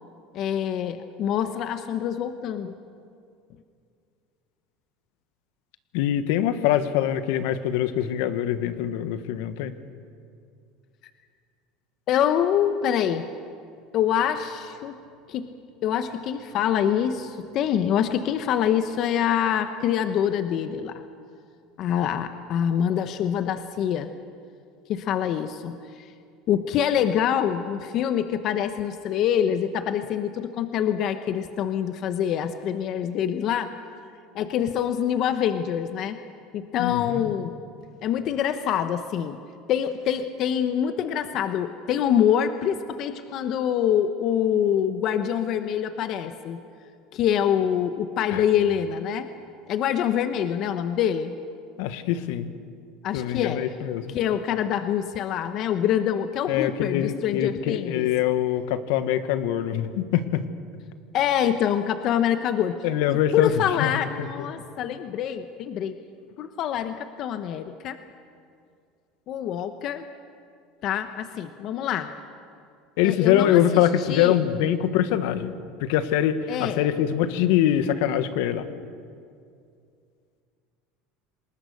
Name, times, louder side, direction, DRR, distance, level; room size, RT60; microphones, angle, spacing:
voice 1, 0.3-2.7 12.1-13.3 13.9-15.0 15.3-15.5 15.8-21.0 21.8-24.1 24.9-26.1 26.5-33.7 34.3-36.2 36.5-37.5 38.0-39.4 39.7-46.6 47.1-49.3 49.7-51.4 53.0-53.7 54.1-58.1 61.1-62.8 63.1-66.0 66.4-68.0 69.3-70.0 70.8-72.1 73.0-74.4 76.5-76.8, left 9 dB, 50° left, 9 dB, 1.0 m, -25 dB
voice 2, 5.9-9.7 36.8-37.3 48.3-48.4 51.8-52.5 53.1-54.1 56.5-60.4 62.8-63.5 63.8-63.9 64.2-64.3 73.0-75.5 75.8-78.7, left 11 dB, 75° left, 10 dB, 1.4 m, -24 dB
28.0 x 20.5 x 6.6 m, 2.4 s
supercardioid pair, 130°, 0 cm